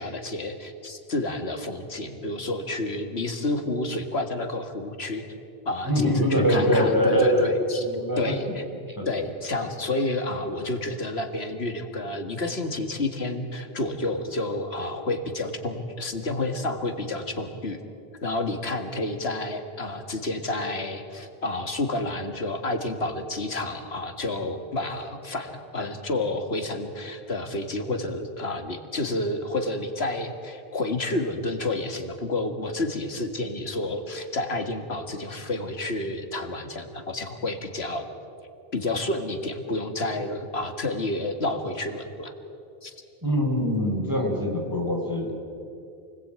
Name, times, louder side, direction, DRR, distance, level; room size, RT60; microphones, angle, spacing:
voice 1, 0.0-5.2 5.7-7.9 8.2-8.6 9.1-17.8 18.2-38.1 38.7-42.3 42.8-43.0, left 2 dB, 80° left, 6 dB, 2.1 m, -30 dB
voice 2, 5.9-7.5 7.8-8.3 9.0-9.1 43.2-45.3, equal, 20° right, 1 dB, 4.2 m, -23 dB
29.0 x 20.0 x 8.8 m, 2.6 s
omnidirectional pair, 1.0 m